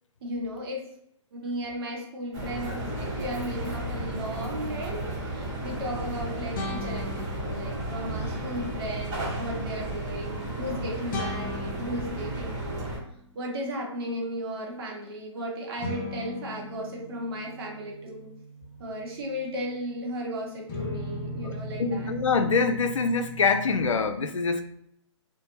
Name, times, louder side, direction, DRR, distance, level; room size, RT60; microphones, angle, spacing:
voice 1, 0.2-0.9 1.3-12.9 13.3-18.3 18.8-22.2, equal, 50° right, -1 dB, 0.9 m, -35 dB
sound 1, 2.3-13.0, right 1 dB, 20° right, 1.0 m, -33 dB
sound 2, 6.5-8.2 11.1-13.5 15.8-20.1 20.7-23.9, left 2 dB, 40° left, 0.7 m, -39 dB
voice 2, 21.8-24.6, left 4 dB, 85° left, 8 dB, 0.4 m, -25 dB
2.6 x 2.1 x 2.8 m, 0.71 s
hypercardioid pair, 140°, 16 cm